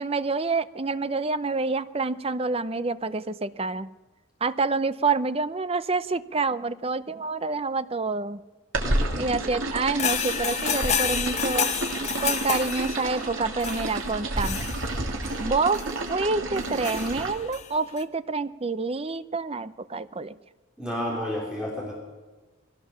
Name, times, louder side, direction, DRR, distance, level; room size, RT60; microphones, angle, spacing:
voice 1, 0.0-3.9 4.4-8.4 9.2-11.7 12.2-14.7 15.4-15.8 16.1-20.3, right 3 dB, 30° right, 14 dB, 0.7 m, -27 dB
sound 1, 8.7-17.3, right 2 dB, 85° right, 3.1 m, -30 dB
voice 2, 8.8-9.1 20.8-21.9, equal, 5° right, -3 dB, 3.6 m, -31 dB
sound 2, 9.9-15.3 15.7-15.9 16.6-17.7 18.0-18.1, left 8 dB, 35° left, 1.2 m, -30 dB
22.0 x 17.5 x 7.4 m, 1.2 s
head